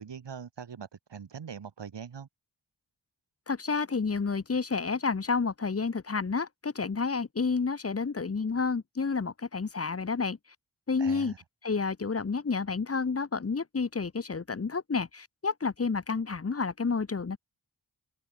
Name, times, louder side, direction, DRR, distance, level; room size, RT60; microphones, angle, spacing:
voice 1, 0.0-2.3 11.0-11.4, right 7 dB, 75° right, 1.5 m, -42 dB
voice 2, 3.5-10.4 10.9-11.3 11.6-17.4, left 4 dB, 35° left, 0.9 m, -30 dB
open air
cardioid pair, 55°, 43 cm